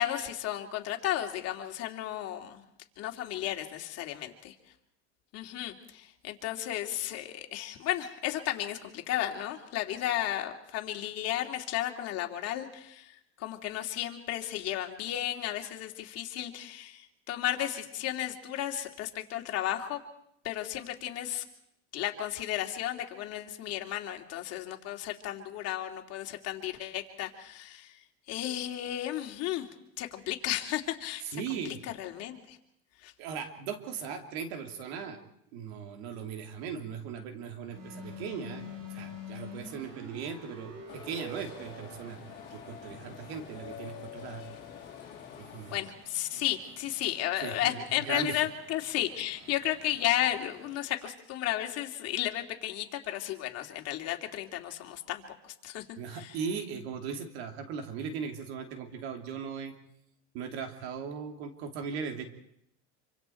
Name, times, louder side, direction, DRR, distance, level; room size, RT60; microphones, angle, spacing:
voice 1, 0.0-2.6 3.0-4.5 5.3-20.0 20.4-21.4 21.9-27.9 28.3-29.7 30.0-31.2 31.5-32.6 33.0-33.1 45.7-55.8 56.1-56.4, left 12 dB, 55° left, 3 dB, 2.9 m, -34 dB
voice 2, 31.2-31.8 33.2-35.2 35.5-42.2 42.5-44.4 45.4-45.7 46.3-46.4 47.4-48.4 56.0-59.7 60.3-62.2, right 6 dB, 90° right, 5 dB, 3.1 m, -38 dB
sound 1, 37.7-50.8, left 2 dB, 60° right, 6.5 m, -49 dB
sound 2, 40.9-45.9, left 9 dB, 35° left, 4.7 m, -47 dB
26.5 x 25.5 x 4.6 m, 0.75 s
supercardioid pair, 125°, 30 cm